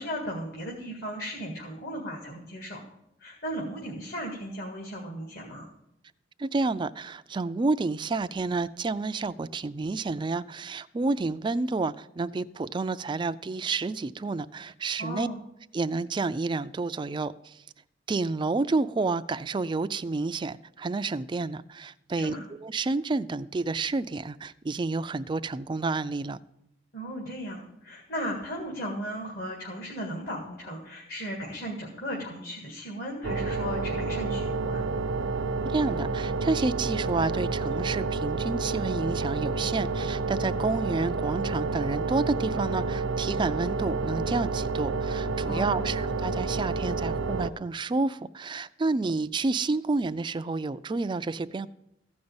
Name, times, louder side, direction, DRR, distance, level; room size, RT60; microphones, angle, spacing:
voice 1, 0.0-2.8 3.2-5.7 15.0-15.4 22.2-22.4 26.9-34.8 45.5-45.9, equal, 55° left, 2.0 m, -36 dB
voice 2, 6.4-15.3 15.7-17.6 18.1-26.4 35.6-51.7, right 3 dB, 25° right, 0.3 m, -30 dB
sound 1, 33.2-47.5, right 3 dB, 90° right, 0.7 m, -29 dB
15.0 x 5.3 x 8.7 m
head